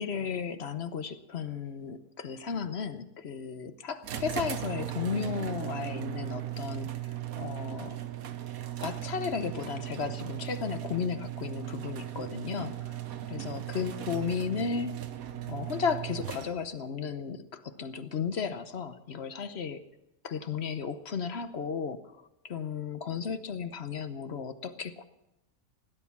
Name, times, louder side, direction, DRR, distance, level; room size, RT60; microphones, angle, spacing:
voice 1, 0.0-7.0 7.4-8.0 8.8-13.0 13.3-14.9 15.5-19.8 20.2-22.0 22.4-25.0, left 6 dB, 50° left, 11 dB, 1.0 m, -34 dB
sound 1, 4.0-16.8, right 12 dB, 70° right, 1.3 m, -37 dB
17.0 x 10.5 x 7.2 m, 0.91 s
omnidirectional pair, 1.6 m